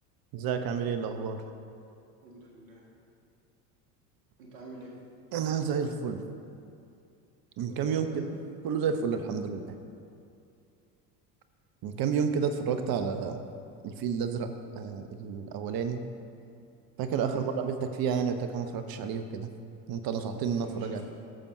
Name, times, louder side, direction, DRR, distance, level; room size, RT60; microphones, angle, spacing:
voice 1, 0.3-1.4 5.3-6.2 7.6-8.4 8.6-9.7 11.8-13.4 13.8-16.0 17.0-19.5 19.9-21.0, right 6 dB, 45° right, 8 dB, 0.9 m, -30 dB
voice 2, 2.2-2.8 4.4-5.0 7.7-8.3 17.1-17.5 20.6-21.0, right 3 dB, 75° right, -2 dB, 1.8 m, -46 dB
15.0 x 7.0 x 2.7 m, 2.6 s
hypercardioid pair, 75°, 49 cm